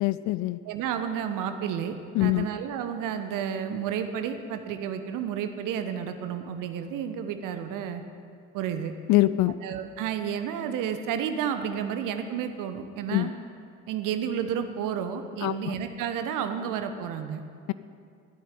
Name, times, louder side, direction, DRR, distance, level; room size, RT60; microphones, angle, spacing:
voice 1, 0.0-0.6 2.1-2.5 9.1-9.5 13.1-13.3 15.4-15.6, left 17 dB, 50° left, 15 dB, 0.5 m, -23 dB
voice 2, 0.6-8.0 8.5-8.9 9.6-13.3 13.9-17.4, right 8 dB, 55° right, 8 dB, 1.1 m, -31 dB
14.0 x 9.2 x 9.2 m, 2.3 s
figure-of-eight pair, 45°, 37 cm